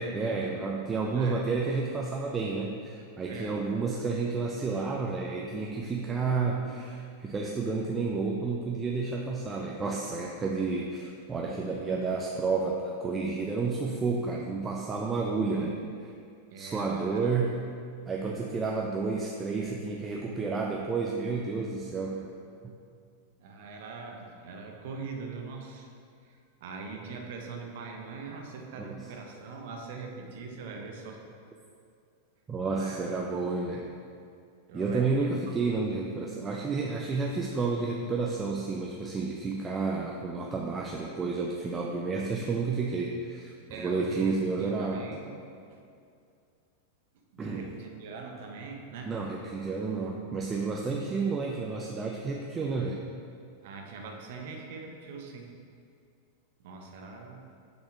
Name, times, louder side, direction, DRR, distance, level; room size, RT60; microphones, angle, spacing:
voice 1, 0.0-15.8 16.0-16.1 16.6-17.7 18.1-22.3 28.8-29.0 32.5-33.9 34.7-45.1 47.4-47.6 49.0-53.0, right 4 dB, 20° right, -1 dB, 0.6 m, -31 dB
voice 2, 1.0-1.4 3.3-3.6 16.5-17.3 23.4-25.9 26.2-31.2 32.7-33.4 34.7-35.3 35.6-35.8 43.7-45.4 45.7-45.8 47.3-49.2 49.9-50.1 50.9-51.0 53.6-55.5 56.6-57.4, right 4 dB, 50° right, 2 dB, 1.0 m, -42 dB
8.6 x 4.3 x 4.6 m, 2.4 s
figure-of-eight pair, 90°, 0 cm